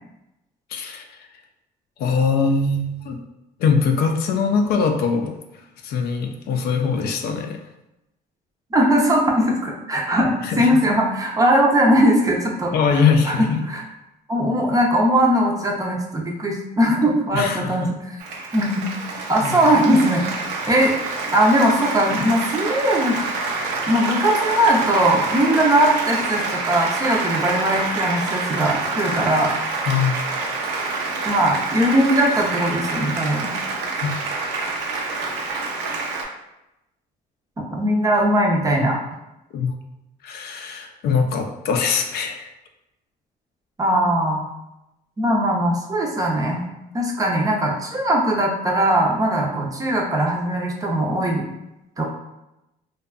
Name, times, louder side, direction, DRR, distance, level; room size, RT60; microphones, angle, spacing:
voice 1, 0.7-1.3 2.0-3.2 3.6-5.3 5.8-7.6 10.4-10.7 12.7-13.6 17.3-17.9 19.4-19.6 29.9-30.2 34.0-34.1 38.8-39.0 39.5-39.7 40.2-42.5, left 5 dB, 70° left, 4 dB, 0.4 m, -22 dB
voice 2, 8.7-13.8 14.3-18.2 18.5-18.9 19.3-20.2 20.7-20.9 21.3-23.2 23.9-29.5 31.2-33.5 37.6-39.0 43.8-44.4 45.2-46.6 46.9-51.4 52.0-52.1, right 1 dB, 20° right, 0 dB, 0.4 m, -20 dB
Applause, 18.2-36.2, right 3 dB, 90° right, 0.5 m, -27 dB
2.6 x 2.2 x 2.3 m, 0.91 s
cardioid pair, 110°, 17 cm